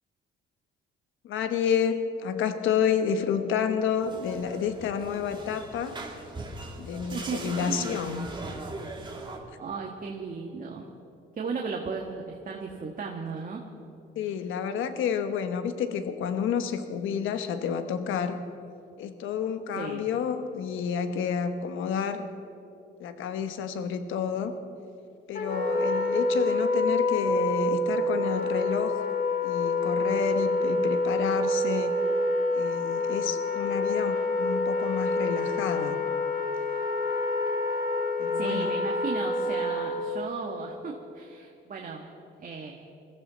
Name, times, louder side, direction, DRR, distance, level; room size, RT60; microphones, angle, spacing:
voice 1, 1.2-6.0 6.8-8.3 14.1-18.4 19.0-22.3 23.0-24.5 25.3-29.0 29.4-32.0 32.5-36.0 38.2-38.7, left 7 dB, 85° left, 9 dB, 1.1 m, -30 dB
sound 1, 4.0-9.4, right 2 dB, 25° right, 2.7 m, -40 dB
voice 2, 7.1-7.9 9.6-10.9 11.3-13.6 19.8-20.0 38.3-42.1 42.4-42.7, right 4 dB, 45° right, 1 dB, 1.6 m, -35 dB
Wind instrument woodwind instrument, 25.3-40.2, left 2 dB, 50° left, 2.2 m, -27 dB
22.0 x 14.5 x 4.1 m, 2.7 s
cardioid pair, 90°, 20 cm